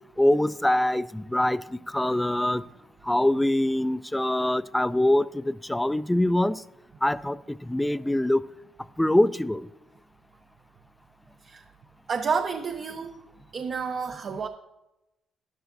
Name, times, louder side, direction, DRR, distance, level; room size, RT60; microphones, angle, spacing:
voice 1, 0.2-1.6 1.9-2.6 3.1-6.6 7.0-7.4 7.7-8.4 9.0-9.6, left 1 dB, 10° left, 16 dB, 0.3 m, -23 dB
voice 2, 12.1-13.2 13.5-14.5, right 5 dB, 50° right, 6 dB, 0.5 m, -30 dB
12.5 x 10.5 x 2.6 m, 0.97 s
cardioid pair, 90°, 0 cm